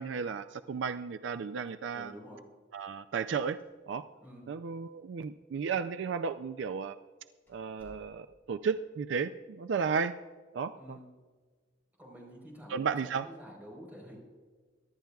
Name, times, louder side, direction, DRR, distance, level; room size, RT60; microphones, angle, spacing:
voice 1, 0.0-2.1 2.7-3.6 3.9-4.0 4.5-7.0 7.5-10.1 10.5-11.0 12.7-13.3, right 5 dB, 70° right, 11 dB, 0.4 m, -34 dB
voice 2, 1.9-2.4 4.2-4.5 10.7-11.0 12.0-14.2, equal, 10° right, -2 dB, 4.0 m, -49 dB
sound 1, 3.6-4.2 4.5-4.6 5.3-5.4 6.2-6.4 6.8-6.9 7.5-8.6, equal, 10° left, 4.3 m, -60 dB
23.5 x 11.5 x 2.3 m, 1.5 s
head